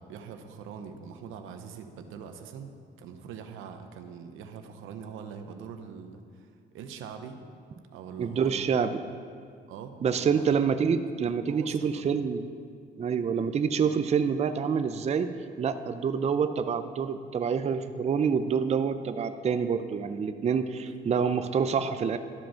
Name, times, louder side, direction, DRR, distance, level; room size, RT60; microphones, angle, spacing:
voice 1, 0.0-2.7 3.0-7.4 7.9-8.7 9.7-10.5 11.3-12.1, right 6 dB, 90° right, 7 dB, 0.8 m, -43 dB
voice 2, 8.2-8.9 10.0-12.4 13.0-15.3 15.6-22.2, right 6 dB, 35° right, 10 dB, 0.4 m, -27 dB
12.5 x 5.2 x 5.6 m, 2.2 s
cardioid pair, 90°, 20 cm